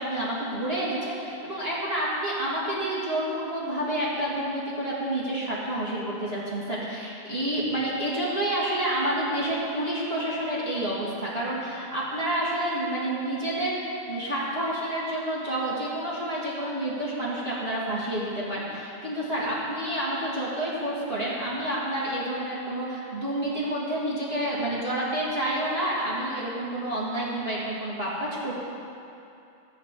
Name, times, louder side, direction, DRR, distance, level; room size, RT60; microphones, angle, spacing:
voice 1, 0.0-13.8 14.1-28.6, right 1 dB, 25° right, -7 dB, 1.4 m, -29 dB
14.5 x 5.2 x 8.1 m, 2.7 s
omnidirectional pair, 3.7 m